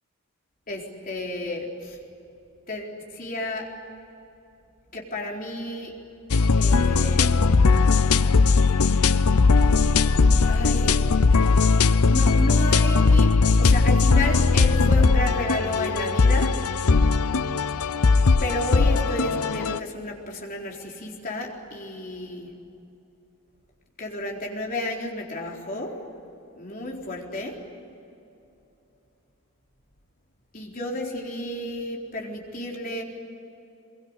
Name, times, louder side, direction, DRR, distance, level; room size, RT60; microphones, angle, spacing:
voice 1, 0.7-2.0 2.7-3.8 4.9-6.0 6.6-7.4 8.9-9.1 10.4-11.0 12.0-16.6 18.4-22.6 24.0-26.0 26.5-27.6 30.5-33.0, left 1 dB, 40° left, -1 dB, 4.2 m, -31 dB
sound 1, 6.3-19.8, left 4 dB, 85° left, 0.7 m, -19 dB
24.5 x 23.0 x 9.9 m, 2.8 s
head